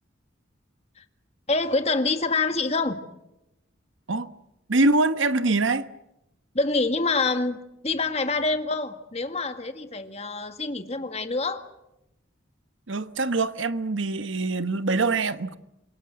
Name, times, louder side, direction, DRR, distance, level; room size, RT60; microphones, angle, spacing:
voice 1, 1.5-3.0 6.5-11.6, left 3 dB, 35° left, 1.8 m, -26 dB
voice 2, 4.7-5.9 12.9-15.6, right 3 dB, 85° right, 1.2 m, -24 dB
27.5 x 23.0 x 8.0 m
head